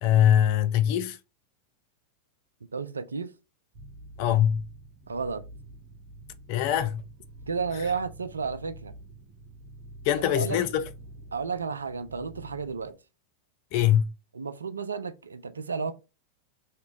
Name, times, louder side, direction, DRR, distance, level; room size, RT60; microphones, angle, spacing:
voice 1, 0.0-1.2 4.2-4.6 6.5-7.0 10.0-10.8 13.7-14.1, left 10 dB, 45° left, 0.5 m, -22 dB
voice 2, 2.6-3.3 5.1-5.5 7.5-8.9 10.3-10.6 11.3-13.0 14.3-15.9, right 5 dB, 75° right, 0.3 m, -32 dB
sound 1, 3.7-12.9, right 2 dB, 55° right, 1.1 m, -47 dB
2.9 x 2.8 x 3.5 m
figure-of-eight pair, 90°, 0 cm